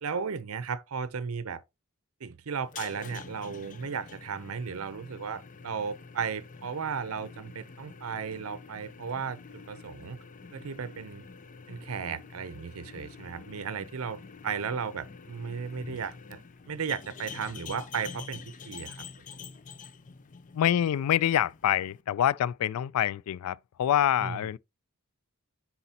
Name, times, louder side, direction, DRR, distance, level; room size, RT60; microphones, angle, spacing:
voice 1, 0.0-1.6 2.2-10.2 10.5-11.2 11.7-19.1 24.2-24.5, right 6 dB, 70° right, 0.6 m, -35 dB
sound 1, 2.6-22.0, left 5 dB, 35° left, 0.5 m, -47 dB
voice 2, 20.5-24.6, left 10 dB, 90° left, 0.3 m, -26 dB
9.8 x 4.1 x 2.8 m
head